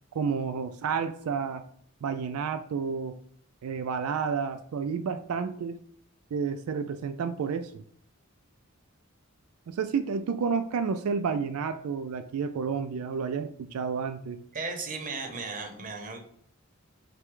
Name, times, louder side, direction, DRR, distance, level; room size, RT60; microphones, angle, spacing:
voice 1, 0.2-1.6 2.0-3.2 3.6-5.8 6.3-7.8 9.7-14.4, right 6 dB, 90° right, 8 dB, 0.4 m, -30 dB
voice 2, 14.5-16.2, right 4 dB, 40° right, 4 dB, 0.8 m, -35 dB
5.7 x 2.2 x 3.7 m, 0.63 s
head